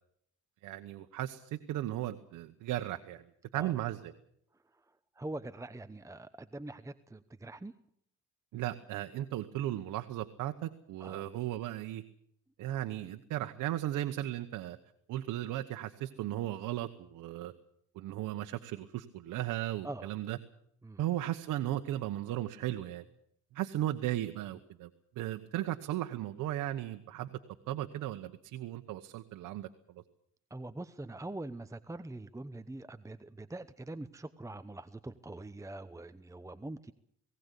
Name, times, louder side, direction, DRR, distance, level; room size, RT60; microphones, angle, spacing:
voice 1, 0.6-3.2 3.5-4.1 8.5-12.0 12.6-14.8 15.1-17.5 17.9-20.4 21.0-23.1 23.5-24.9 25.2-27.4 27.7-29.7, right 13 dB, 90° right, 7 dB, 1.1 m, -36 dB
voice 2, 5.1-7.7 11.0-11.3 19.8-20.1 20.8-21.0 30.5-36.9, right 2 dB, 10° right, 12 dB, 0.9 m, -44 dB
19.5 x 18.0 x 8.3 m, 0.69 s
cardioid pair, 90°, 30 cm